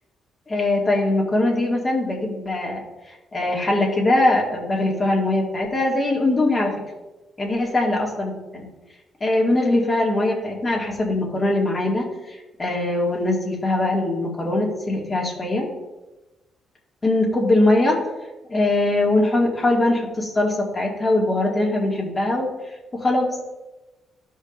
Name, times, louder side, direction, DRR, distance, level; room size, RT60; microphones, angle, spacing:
voice 1, 0.5-6.7 7.4-8.7 9.2-15.7 17.0-18.0 18.5-22.5 22.9-23.3, left 2 dB, 30° left, -3 dB, 2.1 m, -21 dB
13.0 x 5.1 x 2.6 m, 1.1 s
cardioid pair, 90°, 0 cm